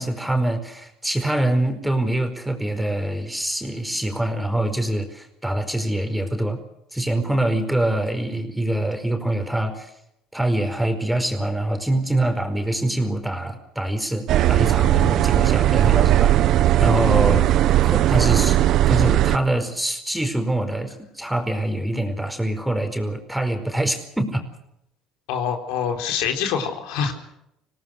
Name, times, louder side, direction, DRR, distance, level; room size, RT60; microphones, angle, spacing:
voice 1, 0.0-6.6 6.9-9.9 10.3-16.3 16.8-17.5 17.8-24.4, right 1 dB, 5° right, 6 dB, 4.8 m, -24 dB
sound 1, 14.3-19.4, right 13 dB, 60° right, 1.0 m, -17 dB
voice 2, 25.3-27.1, left 7 dB, 80° left, 4 dB, 4.0 m, -25 dB
26.0 x 18.5 x 6.6 m, 0.79 s
supercardioid pair, 90°, 0 cm